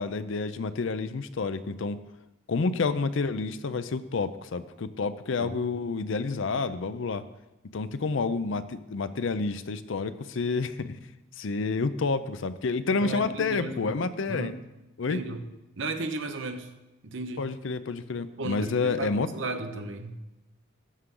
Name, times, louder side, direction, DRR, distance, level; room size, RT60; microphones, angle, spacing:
voice 1, 0.0-2.0 2.5-7.2 7.7-11.0 11.4-14.5 15.0-15.2 17.4-19.3, left 4 dB, 60° left, 13 dB, 0.5 m, -29 dB
voice 2, 13.0-14.0 14.3-14.6 15.1-15.4 15.8-16.7 17.0-17.5 18.4-20.2, right 3 dB, 60° right, 7 dB, 0.8 m, -35 dB
12.5 x 7.9 x 3.8 m, 0.98 s
head